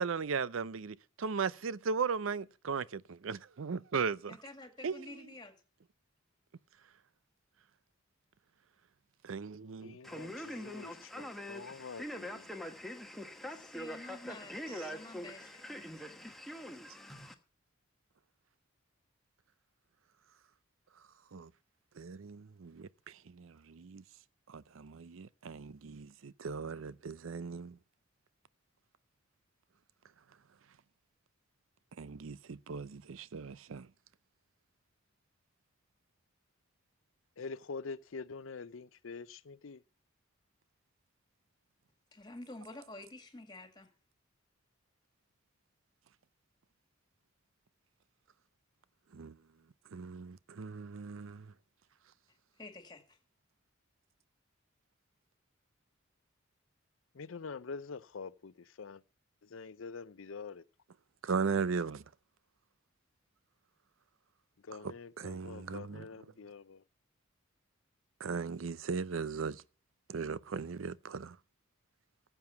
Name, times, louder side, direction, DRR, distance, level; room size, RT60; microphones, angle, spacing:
voice 1, 0.0-4.4 4.8-5.2 9.2-10.0 21.3-21.5 22.0-24.0 24.5-27.8 32.0-33.9 49.1-49.4 49.9-51.5 61.2-62.0 64.8-66.1 68.2-69.6 70.1-71.4, right 5 dB, 80° right, 0.5 m, -37 dB
voice 2, 4.3-5.5 13.5-16.3 42.1-43.9 52.6-53.2, left 2 dB, 20° left, 2.1 m, -50 dB
voice 3, 9.7-12.5 37.4-39.8 57.1-59.0 59.5-60.6 64.6-66.8, left 4 dB, 75° left, 0.6 m, -45 dB
Male speech man speaking, 10.0-17.3, equal, ahead, 1.2 m, -44 dB
14.5 x 7.5 x 5.8 m
head